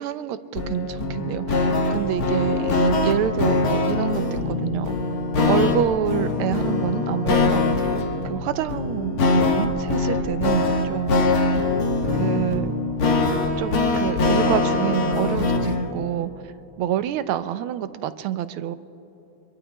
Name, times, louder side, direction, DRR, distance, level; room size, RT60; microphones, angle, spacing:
voice 1, 0.0-5.0 5.5-7.9 8.2-11.2 12.1-12.8 13.6-16.5 16.8-18.8, right 10 dB, 90° right, 12 dB, 1.5 m, -27 dB
sound 1, 0.6-15.9, left 3 dB, 90° left, 2.2 m, -22 dB
26.0 x 22.5 x 2.2 m, 2.8 s
omnidirectional pair, 2.3 m